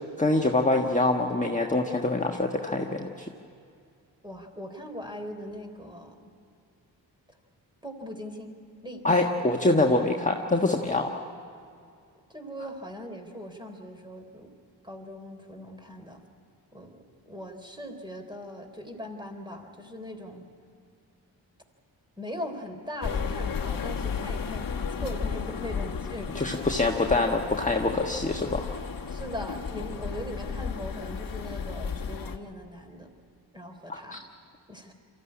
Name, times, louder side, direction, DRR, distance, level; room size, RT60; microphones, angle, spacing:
voice 1, 0.2-3.3 9.0-11.2 26.3-28.7 33.9-34.2, left 2 dB, 15° left, 1 dB, 1.5 m, -25 dB
voice 2, 4.2-6.3 7.8-8.6 8.8-9.0 12.3-14.5 14.8-16.2 16.7-17.0 17.3-20.5 22.2-26.7 29.1-33.1 33.5-34.2 34.7-34.9, equal, 10° right, 5 dB, 3.7 m, -40 dB
sound 1, 23.0-32.4, left 6 dB, 45° left, 1.4 m, -33 dB
23.5 x 14.5 x 9.8 m, 2.4 s
supercardioid pair, 40°, 48 cm